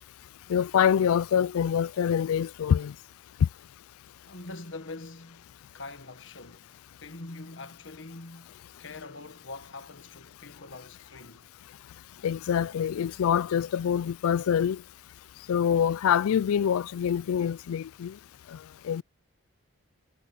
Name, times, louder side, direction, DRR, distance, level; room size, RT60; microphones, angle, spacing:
voice 1, 0.5-2.9 3.4-3.5 12.2-14.8 15.5-18.2 18.5-18.6 18.8-19.0, left 8 dB, 70° left, 0.3 m, -25 dB
voice 2, 4.2-5.5 5.7-6.7 7.0-11.5, left 2 dB, 55° left, 1.6 m, -44 dB
head